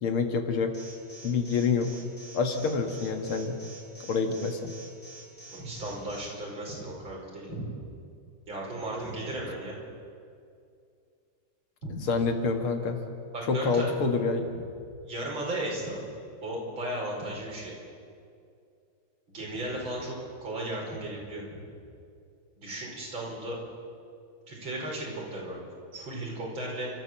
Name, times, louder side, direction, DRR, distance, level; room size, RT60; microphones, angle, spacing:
voice 1, 0.0-0.7 1.2-1.9 2.3-3.6 4.1-4.7 12.0-13.0 13.5-14.5, left 4 dB, 85° left, 6 dB, 2.6 m, -27 dB
Alarm, 0.7-6.3, right 2 dB, 15° left, 5.4 m, -47 dB
voice 2, 5.5-7.7 8.5-9.8 11.8-12.0 13.3-13.9 14.5-14.7 15.1-16.1 16.4-17.7 19.3-21.4 22.6-23.6 24.5-25.7 25.9-26.9, right 1 dB, 65° right, -3 dB, 5.8 m, -35 dB
30.0 x 13.0 x 7.5 m, 2.4 s
omnidirectional pair, 2.3 m